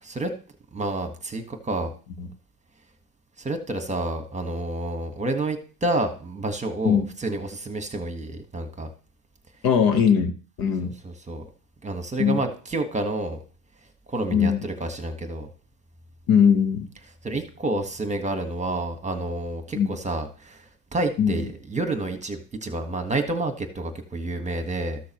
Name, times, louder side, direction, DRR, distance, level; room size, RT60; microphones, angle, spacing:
voice 1, 0.0-0.3 0.7-1.9 3.4-8.9 10.8-11.4 11.8-13.4 14.1-15.5 17.2-20.6 20.9-25.0, right 2 dB, 15° right, 6 dB, 1.5 m, -29 dB
voice 2, 9.6-10.9 12.2-12.4 14.3-14.6 16.3-16.9 19.7-19.9 21.2-21.3, left 7 dB, 45° left, 8 dB, 1.3 m, -20 dB
13.5 x 6.3 x 3.1 m, 0.39 s
hypercardioid pair, 80°, 47 cm